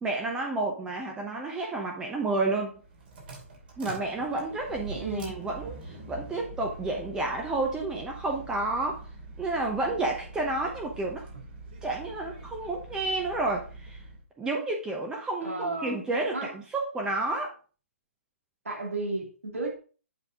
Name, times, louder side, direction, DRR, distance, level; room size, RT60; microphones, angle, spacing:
voice 1, 0.0-2.7 3.8-9.0 9.4-11.3 11.8-14.0 14.4-17.5, right 2 dB, 10° right, 0.8 m, -30 dB
sound 1, 2.7-14.2, right 2 dB, 45° right, 2.8 m, -44 dB
voice 2, 4.9-5.4 11.3-11.4 15.4-16.0 16.3-16.5 18.6-19.7, right 2 dB, 75° right, 2.2 m, -33 dB
7.7 x 5.0 x 3.7 m
figure-of-eight pair, 130°, 7 cm